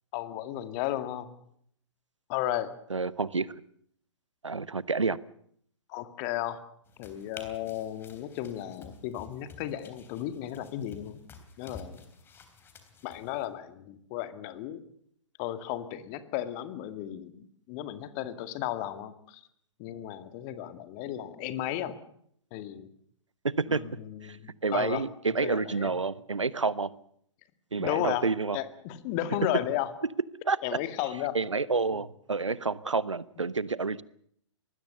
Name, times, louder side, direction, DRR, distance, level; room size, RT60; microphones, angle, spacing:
voice 1, 0.1-1.3 2.3-2.7 5.9-6.6 7.0-11.2 11.6-12.0 13.0-14.8 15.4-19.4 19.8-22.0 22.5-22.9 23.7-24.4 24.7-25.9 27.8-28.3 28.5-29.9 30.6-31.4 31.9-32.0, left 12 dB, 30° left, 2.1 m, -34 dB
voice 2, 2.9-3.5 4.4-5.2 23.4-23.8 24.2-24.4 24.6-26.9 27.7-28.6 30.5-30.6 31.3-34.0, right 4 dB, 80° right, 1.0 m, -29 dB
sound 1, 6.9-13.5, left 4 dB, 15° left, 3.4 m, -51 dB
24.5 x 20.0 x 6.8 m
figure-of-eight pair, 125°, 16 cm